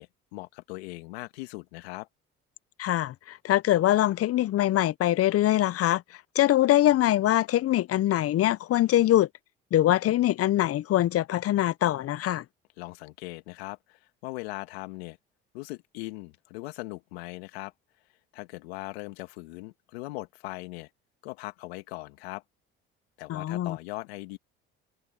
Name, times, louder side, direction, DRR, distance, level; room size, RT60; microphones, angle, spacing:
voice 1, 0.0-2.1 12.8-15.2 15.5-17.7 18.3-20.9 21.2-22.4 23.2-24.4, left 22 dB, 85° left, 1.7 m, -39 dB
voice 2, 2.8-6.0 6.4-9.3 9.7-12.4 23.3-23.8, left 13 dB, 50° left, 0.7 m, -23 dB
open air
hypercardioid pair, 65°, 31 cm